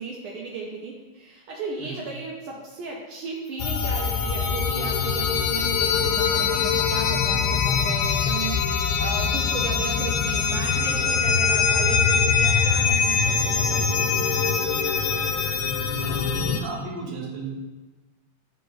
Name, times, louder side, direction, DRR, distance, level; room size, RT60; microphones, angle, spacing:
voice 1, 0.0-14.2, right 4 dB, 80° right, -3 dB, 1.7 m, -36 dB
voice 2, 1.8-2.1 16.0-17.5, right 4 dB, 60° right, -2 dB, 1.8 m, -35 dB
sound 1, 3.6-16.6, left 6 dB, 80° left, 1.4 m, -23 dB
8.1 x 3.8 x 3.9 m, 1.1 s
omnidirectional pair, 2.3 m